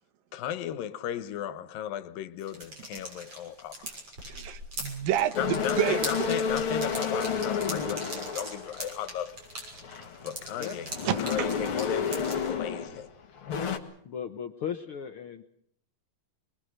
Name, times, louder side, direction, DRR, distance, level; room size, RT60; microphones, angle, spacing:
voice 1, 0.3-3.9 5.4-8.0 8.3-9.4 10.2-10.9 11.2-13.1, left 10 dB, 85° left, 2.9 m, -35 dB
sound 1, 2.4-12.5, right 1 dB, 40° right, 7.7 m, -41 dB
voice 2, 4.3-6.3 11.1-11.3 12.8-12.9, right 11 dB, 85° right, 3.0 m, -29 dB
sound 2, 5.3-9.2 9.7-13.1 13.4-13.8, left 6 dB, 45° left, 2.4 m, -31 dB
voice 3, 14.0-15.4, left 8 dB, 65° left, 1.4 m, -36 dB
25.5 x 22.0 x 6.6 m
omnidirectional pair, 3.9 m